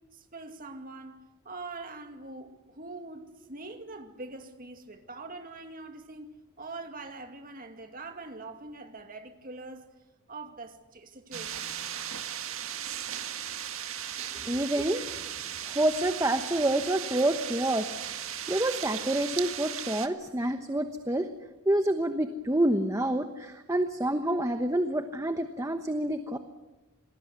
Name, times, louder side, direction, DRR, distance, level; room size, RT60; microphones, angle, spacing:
voice 1, 0.1-1.2 1.4-9.9 10.3-11.6, right 3 dB, 40° right, 2.3 m, -43 dB
sound 1, 11.3-20.1, right 10 dB, 65° right, 1.8 m, -37 dB
voice 2, 14.4-15.0 15.7-17.9 18.5-21.3 21.7-26.4, right 1 dB, 15° right, 1.0 m, -28 dB
27.5 x 20.0 x 8.2 m
head